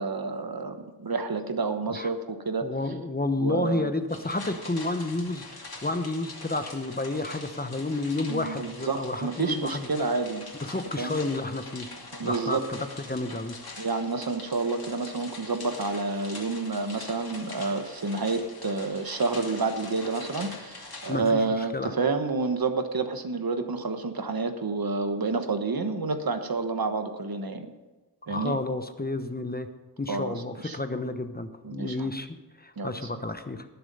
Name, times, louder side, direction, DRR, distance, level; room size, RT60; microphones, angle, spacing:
voice 1, 0.0-2.7 3.4-3.9 8.3-10.5 11.0-11.2 12.1-12.6 13.8-27.7 28.3-28.6 30.1-30.8 31.6-32.1 32.8-32.9, right 3 dB, 60° right, 8 dB, 1.3 m, -29 dB
voice 2, 2.6-9.9 10.6-11.9 12.2-13.6 21.1-21.9 28.3-29.7 30.0-33.7, left 2 dB, 25° left, 8 dB, 0.9 m, -31 dB
sound 1, 4.1-21.1, left 3 dB, 60° left, 2.6 m, -44 dB
19.5 x 7.0 x 5.5 m, 1.2 s
wide cardioid pair, 75°, 41 cm